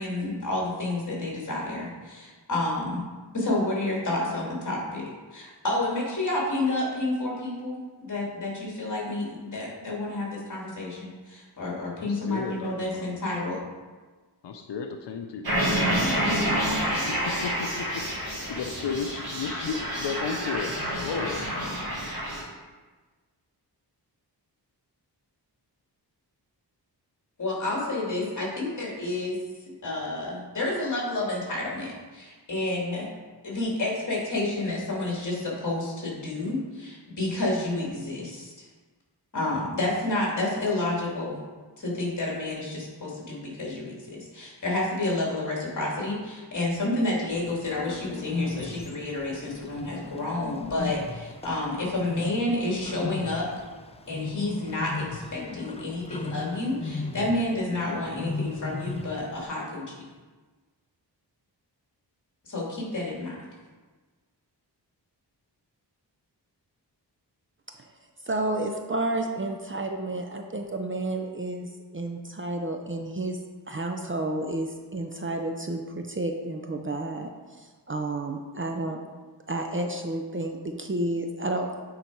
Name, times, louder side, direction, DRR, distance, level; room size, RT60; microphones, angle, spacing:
voice 1, 0.0-3.0 3.3-5.0 5.3-13.6 27.4-29.4 29.8-33.1 33.4-38.7 39.3-41.4 41.8-53.5 54.1-59.9 62.4-63.4, left 2 dB, 45° left, -4 dB, 2.4 m, -30 dB
voice 2, 12.0-13.2 14.4-16.0 16.6-21.5, left 6 dB, 85° left, 5 dB, 0.6 m, -34 dB
sound 1, 15.4-22.4, equal, 60° right, 1.9 m, -28 dB
Bird, 47.3-59.5, left 4 dB, 15° left, 0.3 m, -37 dB
voice 3, 68.3-73.4 73.7-77.3 77.6-79.0 79.5-81.8, right 2 dB, 30° right, 4 dB, 0.5 m, -31 dB
9.1 x 4.0 x 4.6 m, 1.3 s
wide cardioid pair, 130°, 41 cm